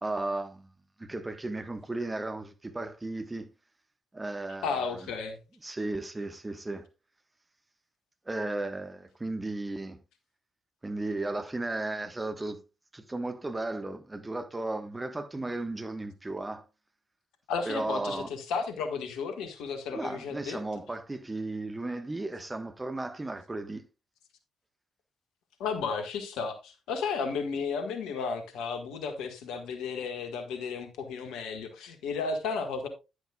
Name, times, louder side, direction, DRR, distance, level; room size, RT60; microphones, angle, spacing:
voice 1, 0.0-0.7 1.0-3.5 4.1-5.1 5.6-6.9 8.3-10.0 10.8-12.6 12.9-16.6 17.7-18.3 19.9-23.9, right 2 dB, 20° right, 1.3 m, -35 dB
voice 2, 4.6-5.4 17.5-20.6 25.6-32.9, left 5 dB, 65° left, 1.6 m, -33 dB
10.5 x 10.0 x 2.4 m
figure-of-eight pair, 40°, 0 cm